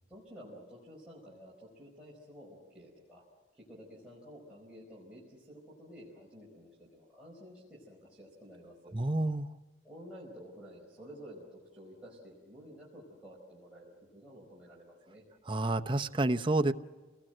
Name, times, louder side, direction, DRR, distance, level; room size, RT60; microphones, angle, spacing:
voice 1, 0.0-3.2 3.5-9.0 9.8-15.2, equal, 5° right, -6 dB, 4.8 m, -52 dB
voice 2, 8.9-9.5 15.5-16.7, right 2 dB, 25° right, 8 dB, 0.7 m, -29 dB
28.0 x 19.5 x 7.8 m, 1.3 s
head